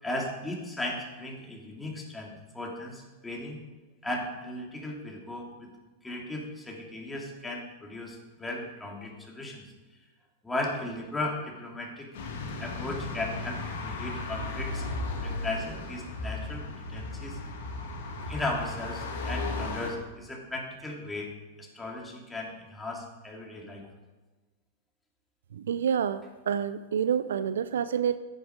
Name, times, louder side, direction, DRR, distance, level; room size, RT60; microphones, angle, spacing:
voice 1, 0.0-3.6 4.0-5.7 6.0-9.7 10.4-12.1 12.6-14.9 15.2-17.4 18.3-21.3 21.6-23.9, left 2 dB, 10° left, -1 dB, 3.0 m, -36 dB
sound 1, 12.1-19.9, left 2 dB, 60° left, 2.5 m, -35 dB
voice 2, 25.5-28.2, right 8 dB, 70° right, 14 dB, 0.5 m, -28 dB
10.5 x 9.8 x 5.1 m, 1.2 s
figure-of-eight pair, 95°, 0 cm